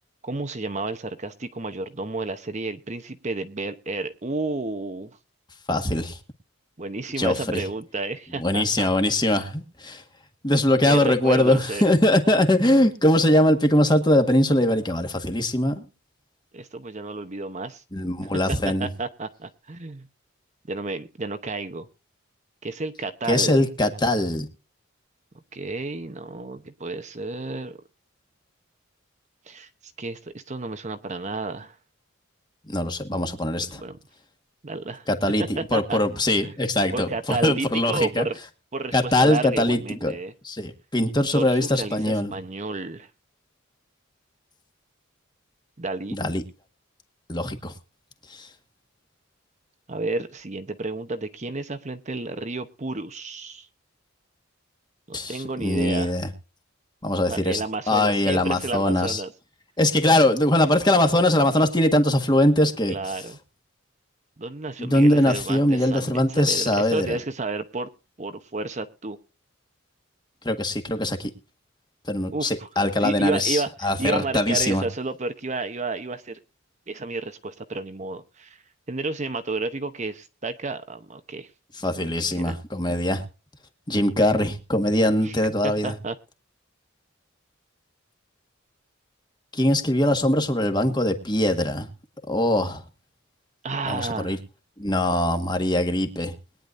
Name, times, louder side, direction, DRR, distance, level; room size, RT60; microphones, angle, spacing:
voice 1, 0.2-5.1 6.8-8.9 10.9-11.9 16.5-17.8 18.8-20.1 20.7-21.9 22.6-23.6 25.5-27.8 29.5-31.8 33.7-34.0 34.6-35.1 35.4-36.0 36.4-36.5 36.9-38.4 38.7-40.3 41.3-43.1 45.8-46.2 49.9-53.7 55.1-56.2 57.3-59.3 62.9-63.4 64.4-67.9 68.2-69.2 72.3-72.7 73.0-76.4 76.9-78.6 78.9-81.5 81.9-82.6 85.2-85.3 85.6-86.2 93.6-94.4, right 3 dB, 35° right, 9 dB, 0.9 m, -31 dB
voice 2, 5.7-6.2 7.2-7.6 8.4-10.0 10.4-15.8 17.9-18.9 23.3-24.5 32.7-33.8 35.1-38.2 38.9-40.1 40.4-42.3 46.1-46.4 47.3-47.7 48.3-48.5 55.1-56.3 57.0-57.6 57.9-59.2 59.8-63.0 64.8-67.2 70.4-71.3 72.1-74.8 81.8-83.2 83.9-85.9 89.5-91.9 92.3-92.8 93.9-94.4 94.8-96.3, left 1 dB, 20° left, 6 dB, 1.7 m, -22 dB
21.5 x 10.0 x 2.6 m, 0.32 s
head